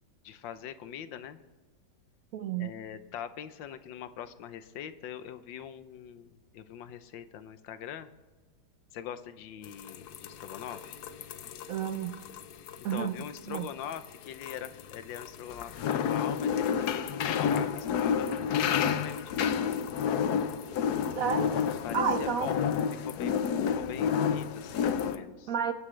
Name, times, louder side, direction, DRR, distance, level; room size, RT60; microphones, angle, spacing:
voice 1, 0.2-1.4 2.6-8.1 8.9-11.0 12.9-19.6 21.8-22.7 23.0-23.4 23.8-25.5, left 9 dB, 85° left, 12 dB, 1.5 m, -42 dB
voice 2, 2.3-2.7 11.7-12.2 12.8-13.2 13.5-13.7 21.2-21.5 21.9-22.6 25.5-25.7, right 8 dB, 70° right, 9 dB, 0.8 m, -30 dB
sound 1, 9.6-25.2, left 7 dB, 65° left, 1.2 m, -30 dB
23.5 x 9.7 x 3.2 m, 1.4 s
omnidirectional pair, 2.0 m